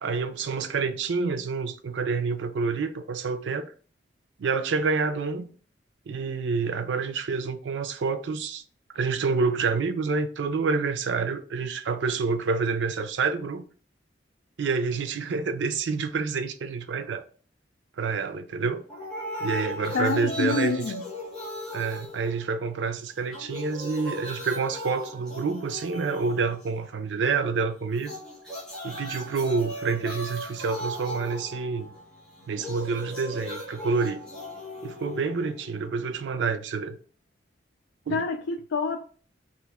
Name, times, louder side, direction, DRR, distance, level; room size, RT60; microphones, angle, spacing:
voice 1, 0.0-3.7 4.4-5.5 6.1-8.6 8.9-13.7 14.6-17.3 18.0-18.8 19.4-20.9 21.7-28.1 28.8-31.9 32.5-34.2 34.8-37.0 38.1-38.2, right 4 dB, 85° right, 0.4 m, -28 dB
sound 1, 18.9-22.9 23.2-26.9 27.9-35.9, left 1 dB, 5° left, 1.1 m, -38 dB
voice 2, 19.9-21.0 38.1-39.0, left 4 dB, 85° left, 0.4 m, -27 dB
3.0 x 2.5 x 3.5 m
head